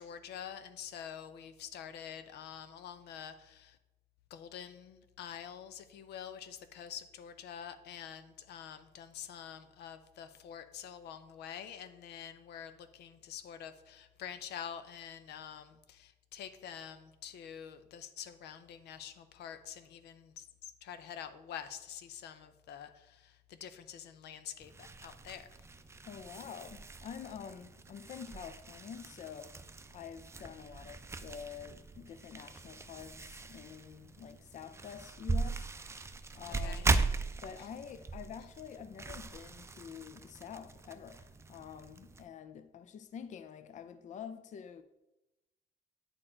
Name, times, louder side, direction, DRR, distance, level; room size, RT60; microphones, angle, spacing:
voice 1, 0.0-3.8 4.3-25.5 36.6-36.9, left 9 dB, 90° left, 0.6 m, -47 dB
sound 1, 24.6-42.2, right 3 dB, 15° right, 0.4 m, -39 dB
voice 2, 26.0-29.5 29.9-35.7 36.3-37.0 37.4-44.8, left 7 dB, 45° left, 0.4 m, -47 dB
8.7 x 4.4 x 4.4 m
cardioid pair, 115°, 17 cm